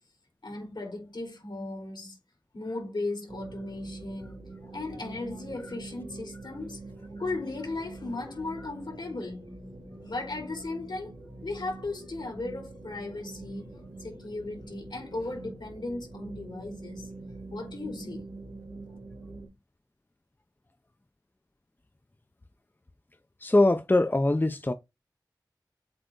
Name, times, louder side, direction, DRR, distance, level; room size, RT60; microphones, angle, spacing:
voice 1, 0.4-2.2 2.5-6.8 7.2-9.5 10.0-11.1 11.4-17.1 17.5-18.3, left 2 dB, 85° left, 3.4 m, -36 dB
sound 1, 3.3-19.5, right 2 dB, 70° right, 2.5 m, -44 dB
voice 2, 23.4-24.7, left 2 dB, 25° left, 0.6 m, -22 dB
7.8 x 3.4 x 3.9 m
wide cardioid pair, 50°, 7 cm